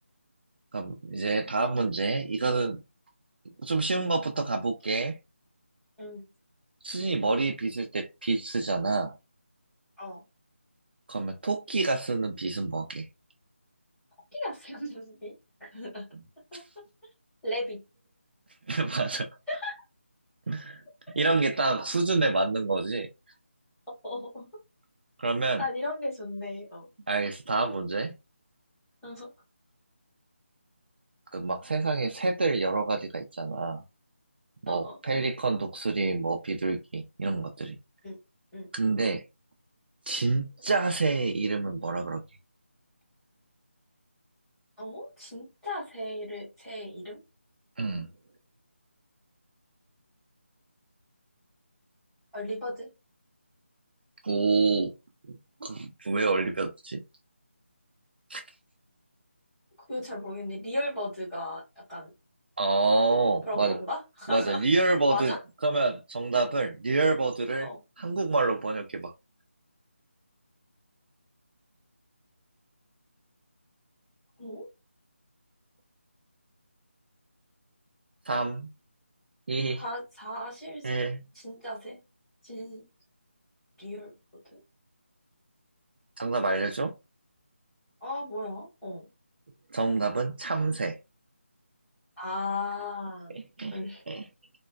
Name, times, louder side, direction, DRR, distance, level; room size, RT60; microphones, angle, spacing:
voice 1, 0.7-2.8 3.6-5.2 6.8-9.1 11.1-13.1 16.5-16.6 18.7-19.3 20.5-20.8 21.2-23.1 25.2-25.6 27.1-28.1 31.3-33.8 34.6-37.8 38.7-39.2 40.1-42.2 47.8-48.1 54.2-54.9 55.3-57.0 58.3-58.4 62.6-63.8 64.3-65.3 65.6-67.7 68.0-69.1 78.3-78.7 79.5-79.8 80.8-81.2 86.2-86.9 89.7-91.0 93.6-93.8 94.1-94.2, right 3 dB, 50° right, 0.4 m, -27 dB
voice 2, 14.3-15.3 15.6-16.1 16.5-16.8 17.4-17.8 19.5-19.8 21.1-21.2 24.0-24.5 25.6-26.9 29.0-29.3 34.7-35.0 38.0-38.2 38.5-38.7 44.8-47.2 52.3-52.9 59.9-62.1 63.4-64.6 65.1-65.4 67.6-67.8 74.4-74.7 79.8-81.0 81.4-82.0 82.4-82.9 83.8-84.1 84.5-84.6 88.0-89.1 92.2-93.4 93.7-94.0, left 2 dB, 5° left, 1.4 m, -36 dB
3.2 x 2.1 x 2.3 m
figure-of-eight pair, 170°, 7 cm